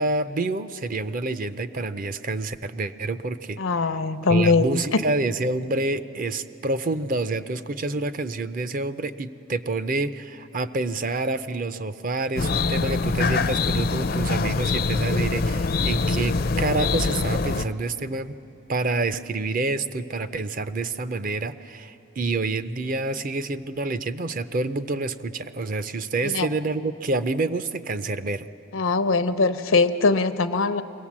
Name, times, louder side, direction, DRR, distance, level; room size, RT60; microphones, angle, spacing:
voice 1, 0.0-3.6 4.3-18.3 18.7-28.5, right 2 dB, 45° right, 12 dB, 0.5 m, -28 dB
voice 2, 3.6-5.0 26.2-26.5 28.7-30.8, left 3 dB, 85° left, 10 dB, 0.7 m, -21 dB
sound 1, 12.4-17.6, left 3 dB, 45° left, 0.5 m, -24 dB
24.5 x 18.0 x 7.3 m, 2.9 s
head